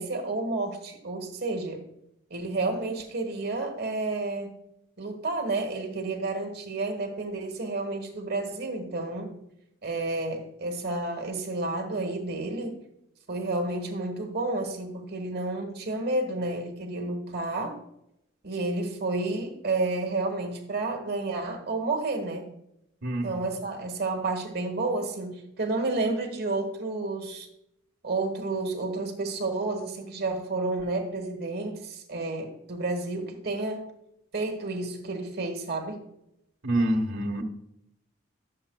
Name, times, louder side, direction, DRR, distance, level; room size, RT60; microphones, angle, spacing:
voice 1, 0.0-1.8 2.3-4.5 5.0-9.3 9.8-12.8 13.3-17.8 18.4-22.5 23.2-27.5 28.0-33.8 34.3-36.0, right 2 dB, 50° right, 3 dB, 1.3 m, -30 dB
voice 2, 23.0-23.4 36.6-37.4, right 1 dB, 70° right, 0 dB, 1.1 m, -26 dB
11.5 x 7.2 x 2.3 m, 0.80 s
head